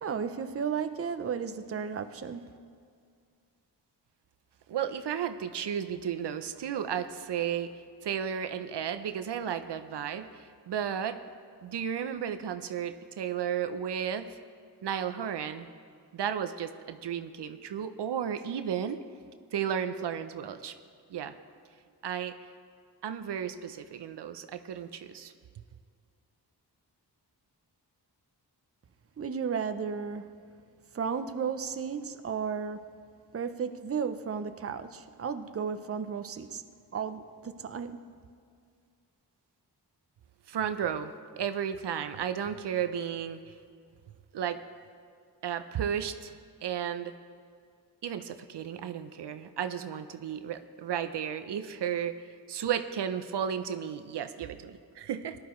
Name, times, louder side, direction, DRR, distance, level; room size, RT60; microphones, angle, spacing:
voice 1, 0.0-2.5 29.2-30.4 30.9-32.8 33.3-36.6 36.9-38.1, right 6 dB, 35° right, 9 dB, 0.6 m, -34 dB
voice 2, 4.7-11.2 11.6-14.3 14.8-15.7 16.1-19.0 19.5-20.7 21.1-21.3 22.0-22.3 23.0-25.3 40.5-43.4 44.3-44.6 45.4-46.3 46.6-47.1 48.0-52.1 52.5-55.4, right 8 dB, 80° right, 9 dB, 0.7 m, -33 dB
18.5 x 11.5 x 3.1 m, 2.2 s
cardioid pair, 75°, 41 cm